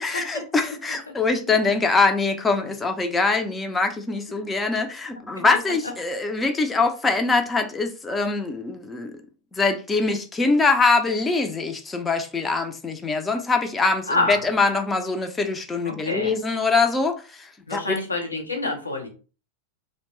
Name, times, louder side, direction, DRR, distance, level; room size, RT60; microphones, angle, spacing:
voice 1, 0.0-9.2 9.5-18.0, left 3 dB, 15° left, 0.4 m, -23 dB
voice 2, 14.1-14.4 15.8-16.4 17.7-19.1, left 2 dB, 80° left, 0.7 m, -27 dB
2.8 x 2.1 x 3.0 m
figure-of-eight pair, 90°, 0 cm